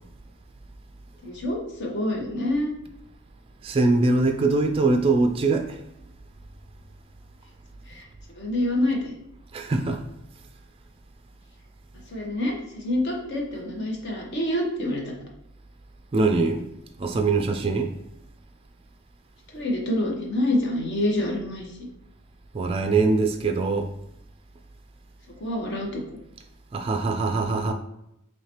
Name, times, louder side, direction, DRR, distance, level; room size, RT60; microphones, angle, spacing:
voice 1, 1.2-2.7 7.9-8.0 8.3-9.1 12.1-15.1 19.5-21.7 25.4-26.0, left 1 dB, 55° left, 1.0 m, -27 dB
voice 2, 3.6-5.8 9.5-10.0 16.1-16.6 17.0-17.9 22.5-23.9 26.7-27.7, right 3 dB, 25° right, 0.3 m, -22 dB
4.8 x 3.2 x 2.9 m
head